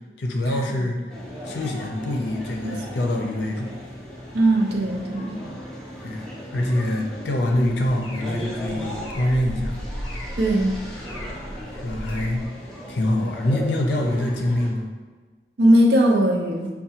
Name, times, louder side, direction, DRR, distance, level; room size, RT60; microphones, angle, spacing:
voice 1, 0.2-1.0 1.4-3.7 6.0-6.2 6.5-9.8 11.7-12.4 12.9-14.8, left 1 dB, 80° left, 1 dB, 0.6 m, -25 dB
sound 1, 1.1-14.7, equal, 5° left, 0.5 m, -37 dB
voice 2, 4.3-5.4 10.4-10.7 15.6-16.7, right 1 dB, 70° right, 0 dB, 0.6 m, -19 dB
sound 2, 7.5-12.5, equal, 25° left, 0.8 m, -36 dB
5.4 x 2.2 x 2.8 m, 1.4 s
head